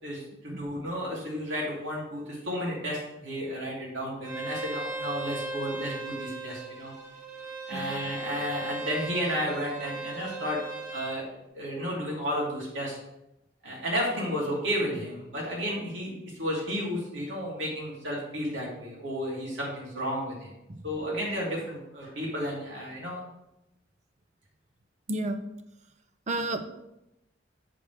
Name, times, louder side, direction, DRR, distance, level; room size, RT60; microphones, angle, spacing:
voice 1, 0.0-6.9 7.7-10.6 10.9-11.2 11.5-13.0 13.6-16.1 16.4-20.5 20.8-23.2, equal, 85° right, -4 dB, 2.9 m, -32 dB
Bowed string instrument, 4.2-11.2, right 2 dB, 20° right, 1.5 m, -37 dB
voice 2, 7.7-8.0 20.7-20.8 25.1-25.4 26.3-26.9, right 1 dB, 40° right, 9 dB, 0.6 m, -32 dB
7.7 x 6.6 x 3.4 m, 0.87 s
head